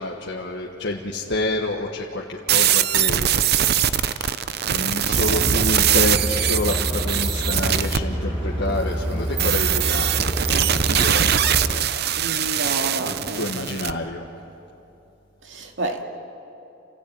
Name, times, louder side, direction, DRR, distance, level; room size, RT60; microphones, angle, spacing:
voice 1, 0.0-10.2 10.5-11.3 11.7-11.9 13.0-14.2, left 2 dB, 65° left, 1.5 m, -29 dB
sound 1, 2.5-8.0 9.4-13.9, right 10 dB, 55° right, 0.6 m, -22 dB
sound 2, 5.1-11.7, equal, 30° right, 5.5 m, -27 dB
voice 2, 12.1-13.7 15.4-16.0, right 2 dB, 80° right, 2.2 m, -30 dB
29.0 x 15.5 x 8.8 m
head